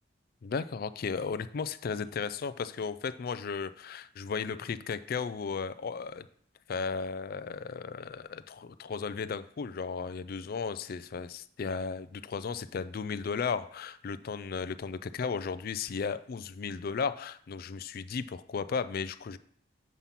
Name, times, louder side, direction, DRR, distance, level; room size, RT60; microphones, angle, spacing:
voice 1, 0.4-6.3 6.7-19.4, left 5 dB, 50° left, 14 dB, 0.4 m, -35 dB
7.3 x 5.4 x 5.8 m, 0.63 s
head